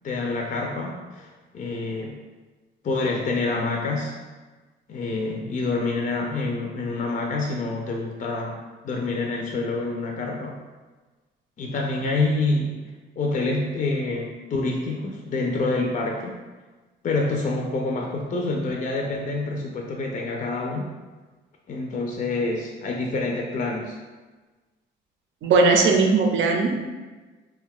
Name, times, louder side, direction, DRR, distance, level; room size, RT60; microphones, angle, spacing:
voice 1, 0.0-1.3 1.5-2.2 2.8-4.1 4.9-8.6 8.8-10.6 11.6-12.8 13.2-16.4 17.0-20.9 21.7-24.0, left 3 dB, 40° left, 0 dB, 0.4 m, -27 dB
voice 2, 25.4-26.9, right 4 dB, 75° right, 3 dB, 0.5 m, -19 dB
2.5 x 2.2 x 3.5 m, 1.3 s
cardioid pair, 90°, 20 cm